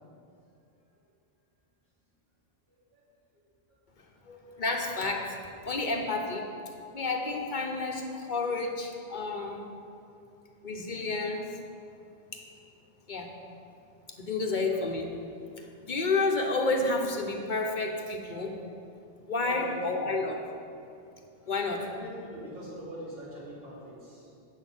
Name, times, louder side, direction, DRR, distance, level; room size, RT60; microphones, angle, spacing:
voice 1, 4.3-6.5 6.9-9.6 10.6-11.5 12.3-12.4 13.1-13.3 14.2-15.1 15.6-18.5 19.3-20.4 21.5-21.8, left 3 dB, 50° left, 2 dB, 0.9 m, -30 dB
voice 2, 19.4-20.2 21.4-24.3, equal, 70° right, -8 dB, 3.0 m, -44 dB
8.0 x 6.2 x 7.1 m, 2.5 s
omnidirectional pair, 1.0 m